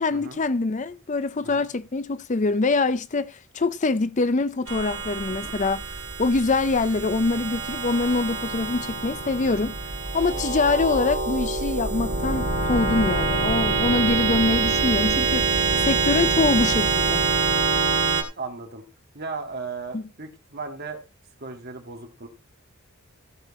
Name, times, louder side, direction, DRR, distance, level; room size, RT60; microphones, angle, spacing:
voice 1, 0.0-9.8 10.1-17.2 19.9-20.0, left 3 dB, 35° left, 0.5 m, -24 dB
sound 1, 4.7-18.2, right 4 dB, 70° right, 2.5 m, -25 dB
voice 2, 18.4-18.8 19.1-21.0 21.4-22.3, right 4 dB, 45° right, 2.1 m, -36 dB
15.5 x 6.7 x 4.2 m
head